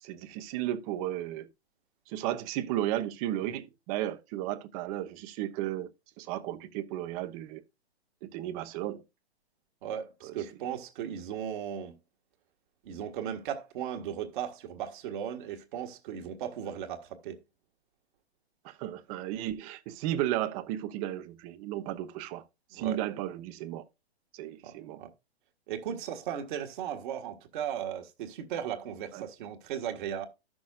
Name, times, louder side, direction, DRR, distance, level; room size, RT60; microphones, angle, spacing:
voice 1, 0.0-1.5 2.1-5.9 6.2-7.6 8.2-9.0 10.2-10.4 18.6-22.4 22.7-23.8 24.3-25.0 29.1-29.3, right 13 dB, 35° right, 0.9 m, -34 dB
voice 2, 9.8-11.9 12.8-17.4 22.7-23.0 24.6-25.1 25.7-30.3, right 9 dB, 50° right, 1.7 m, -36 dB
14.5 x 6.2 x 2.3 m
hypercardioid pair, 120°, 32 cm